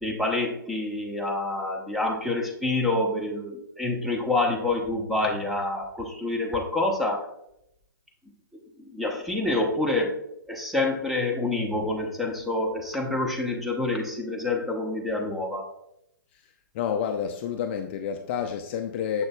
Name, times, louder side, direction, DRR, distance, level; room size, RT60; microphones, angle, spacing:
voice 1, 0.0-7.3 8.9-10.2 10.5-15.7, left 2 dB, ahead, 1 dB, 0.8 m, -27 dB
voice 2, 16.7-19.2, left 8 dB, 30° left, 6 dB, 0.4 m, -29 dB
6.9 x 6.3 x 2.3 m, 0.82 s
figure-of-eight pair, 130°, 11 cm